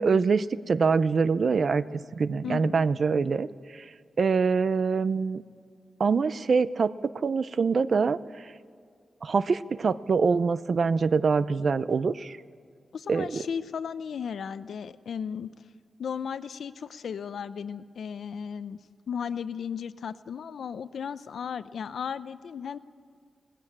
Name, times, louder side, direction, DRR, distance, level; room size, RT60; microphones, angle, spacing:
voice 1, 0.0-1.8 2.2-3.5 3.7-3.8 4.2-5.4 6.0-8.2 9.2-12.4 13.1-13.4, right 5 dB, 55° right, 15 dB, 0.6 m, -24 dB
voice 2, 2.4-2.8 12.9-15.5 16.0-18.8 19.1-22.8, left 7 dB, 85° left, 13 dB, 0.7 m, -35 dB
19.0 x 16.0 x 8.7 m, 2.2 s
wide cardioid pair, 145°, 0 cm